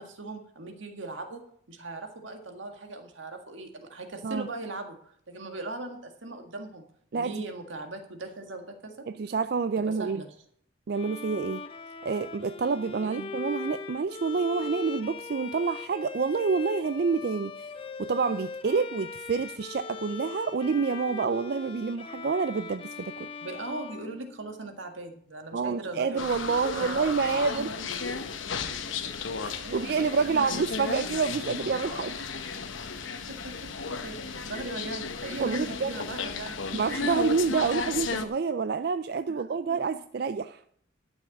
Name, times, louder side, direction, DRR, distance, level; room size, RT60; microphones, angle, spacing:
voice 1, 0.0-6.8 7.1-9.1 9.9-10.3 13.0-13.3 18.7-18.8 23.4-26.4 26.7-27.2 27.5-27.9 28.7-30.6 33.1-36.9 39.3-39.4 39.7-40.0, right 2 dB, 80° right, 4 dB, 1.8 m, -39 dB
voice 2, 9.1-10.2 10.9-11.6 12.0-23.3 25.5-27.7 29.4-32.2 35.4-35.9 36.7-40.6, right 5 dB, 55° right, 11 dB, 0.4 m, -28 dB
Bowed string instrument, 10.9-24.8, left 5 dB, 30° left, 0.6 m, -40 dB
sound 1, 26.2-38.3, left 5 dB, 85° left, 1.0 m, -34 dB
12.0 x 7.1 x 5.9 m, 0.64 s
head